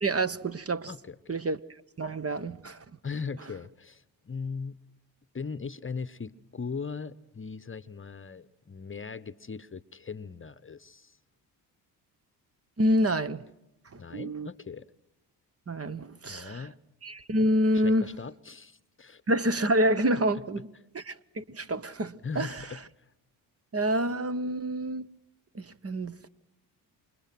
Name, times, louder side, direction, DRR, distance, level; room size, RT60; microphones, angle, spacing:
voice 1, 0.0-0.9 1.3-1.6 2.0-2.8 12.8-13.4 13.9-14.5 15.7-16.7 17.0-18.1 19.3-20.7 20.9-22.5 23.7-25.1 25.5-26.3, right 1 dB, 30° right, 1.3 m, -27 dB
voice 2, 0.9-1.4 3.0-4.8 5.3-11.2 14.0-14.9 16.3-16.8 17.7-19.2 20.3-20.4 22.2-22.8, left 5 dB, 25° left, 1.1 m, -39 dB
28.5 x 25.5 x 6.1 m
hypercardioid pair, 55°, 47 cm